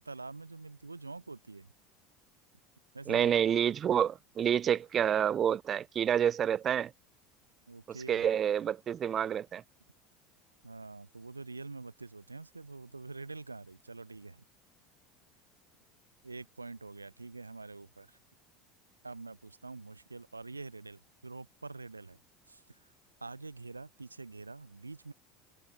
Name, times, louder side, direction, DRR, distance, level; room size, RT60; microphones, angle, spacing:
voice 1, 0.0-1.7 2.9-3.3 7.7-8.3 10.6-14.4 16.2-18.2 19.0-22.2 22.5-22.9 23.2-25.1, right 3 dB, 90° right, 4.5 m, -46 dB
voice 2, 3.1-6.9 8.1-9.6, right 9 dB, 35° right, 1.2 m, -28 dB
figure-of-eight pair, 70°, 0 cm